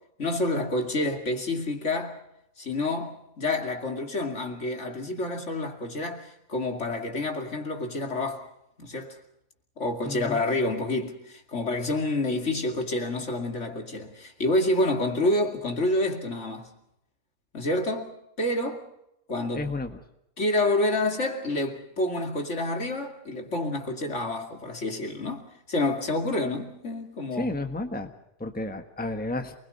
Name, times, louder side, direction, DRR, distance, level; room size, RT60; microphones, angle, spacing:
voice 1, 0.2-2.2 2.6-8.5 8.8-9.2 9.8-16.7 17.5-18.8 19.3-19.7 20.4-27.5, left 2 dB, 55° left, 2.8 m, -28 dB
voice 2, 10.0-10.4 19.5-20.0 27.3-28.1 28.4-29.5, left 2 dB, 5° left, 1.4 m, -32 dB
28.0 x 21.0 x 5.4 m
omnidirectional pair, 1.5 m